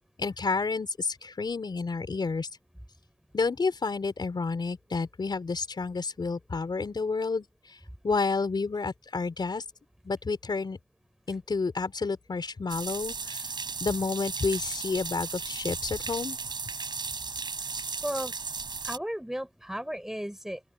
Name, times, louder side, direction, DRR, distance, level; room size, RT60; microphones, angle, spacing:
voice 1, 0.2-2.5 3.3-7.4 8.0-9.6 10.0-10.8 11.3-13.5 13.8-16.4, left 4 dB, 75° left, 5.1 m, -30 dB
sound 1, 12.7-19.0, right 4 dB, 90° right, 5.1 m, -35 dB
voice 2, 18.0-18.3 18.8-20.6, equal, 5° right, 5.1 m, -34 dB
open air
wide cardioid pair, 65°, 7 cm